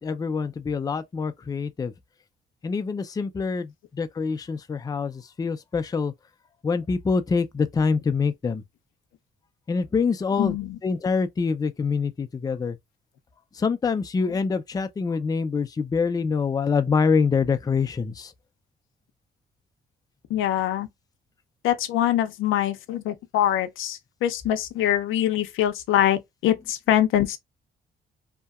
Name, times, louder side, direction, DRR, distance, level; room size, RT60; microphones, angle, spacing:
voice 1, 0.0-1.9 2.6-6.1 6.6-8.6 9.7-10.6 10.8-12.8 13.5-18.3, left 5 dB, 20° left, 0.4 m, -25 dB
voice 2, 10.4-10.8 20.3-20.9 21.6-27.4, left 11 dB, 85° left, 0.5 m, -24 dB
2.7 x 2.1 x 2.3 m
cardioid pair, 90°, 20 cm